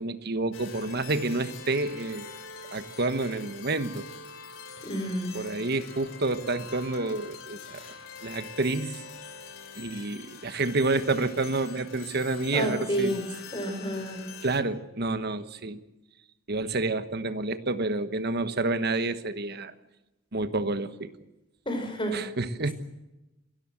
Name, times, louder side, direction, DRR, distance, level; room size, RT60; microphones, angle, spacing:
voice 1, 0.0-2.4 2.7-4.1 5.3-7.9 8.2-9.0 9.8-13.2 14.4-15.8 16.5-19.7 20.3-21.1 22.1-22.7, right 2 dB, 55° right, 11 dB, 1.2 m, -29 dB
sound 1, 0.5-14.6, left 5 dB, 75° left, 3.3 m, -44 dB
voice 2, 4.8-5.4 12.5-13.3 13.5-14.2 21.7-22.2, equal, 25° left, 5 dB, 4.5 m, -29 dB
27.0 x 13.0 x 7.7 m, 1.0 s
head